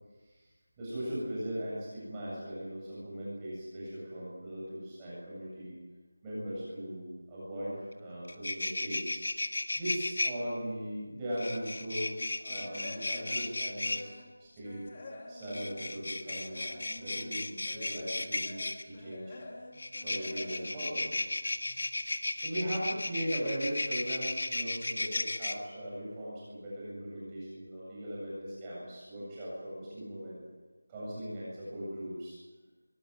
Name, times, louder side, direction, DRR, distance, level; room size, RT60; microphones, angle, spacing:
voice 1, 0.8-5.8 6.2-9.2 9.8-14.1 14.4-14.8 15.3-16.7 17.0-19.4 20.0-21.2 21.6-21.7 22.3-30.4 30.9-32.4, equal, 10° right, -8 dB, 7.9 m, -39 dB
sound 1, 7.9-8.0 8.2-10.3 11.4-14.0 15.4-18.8 19.8-25.5, left 2 dB, 50° left, 1.7 m, -34 dB
sound 2, 11.3-11.8 12.2-14.4 14.6-21.9 22.2-22.5 23.0-23.1 23.4-23.5, left 2 dB, 15° left, 2.5 m, -49 dB
23.0 x 19.5 x 9.2 m, 1.3 s
figure-of-eight pair, 180°, 0 cm